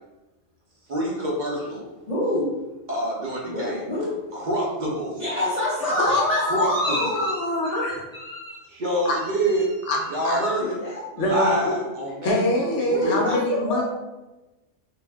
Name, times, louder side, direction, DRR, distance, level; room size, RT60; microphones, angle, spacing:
voice 1, 0.9-1.8 2.9-3.8 4.3-5.2 6.4-7.0 8.7-9.7 10.1-10.8 11.1-12.4 12.8-13.2, right 1 dB, 50° right, -4 dB, 0.6 m, -26 dB
voice 2, 2.1-2.5 3.4-4.1 5.1-8.6 9.2-9.6 10.2-11.0 12.9-13.4 13.7-13.8, left 1 dB, 40° left, -10 dB, 0.6 m, -27 dB
voice 3, 5.8-8.0 9.0-9.1 9.9-10.0 10.2-10.4 11.2-11.5 12.2-13.8, left 1 dB, 75° left, 1 dB, 0.9 m, -24 dB
2.5 x 2.0 x 3.3 m, 1.1 s
omnidirectional pair, 1.3 m